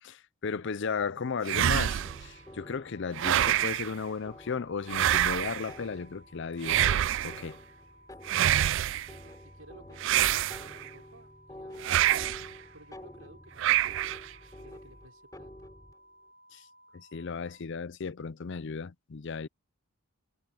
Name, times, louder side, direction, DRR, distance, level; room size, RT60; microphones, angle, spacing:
voice 1, 0.0-6.8 7.2-7.6 16.5-16.6 16.9-19.5, left 5 dB, 55° left, 0.5 m, -35 dB
sound 1, 1.5-2.3 3.2-3.9 4.9-5.7 6.6-7.4 8.3-9.1 10.0-10.9 11.8-12.5 13.6-14.3, right 12 dB, 55° right, 0.3 m, -26 dB
sound 2, 1.7-17.6, equal, 35° left, 7.3 m, -59 dB
sound 3, 1.8-16.0, left 1 dB, 15° left, 3.8 m, -50 dB
voice 2, 8.2-12.4 12.7-14.2 14.6-15.5, right 2 dB, 75° right, 5.9 m, -56 dB
head